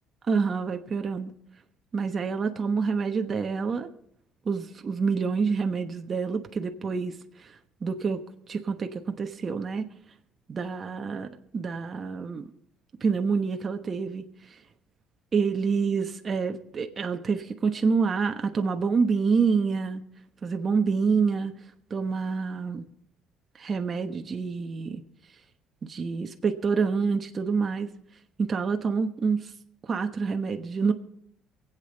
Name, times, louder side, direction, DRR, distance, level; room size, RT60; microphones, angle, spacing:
voice 1, 0.3-1.3 1.9-3.9 4.4-7.5 7.8-8.2 8.5-9.9 10.5-12.5 13.0-14.3 15.3-20.0 20.4-21.6 21.9-22.9 23.6-25.0 25.8-27.9 28.4-29.5 29.9-30.9, right 5 dB, 35° right, 5 dB, 1.1 m, -27 dB
23.5 x 8.4 x 4.0 m, 0.70 s
cardioid pair, 100°, 0 cm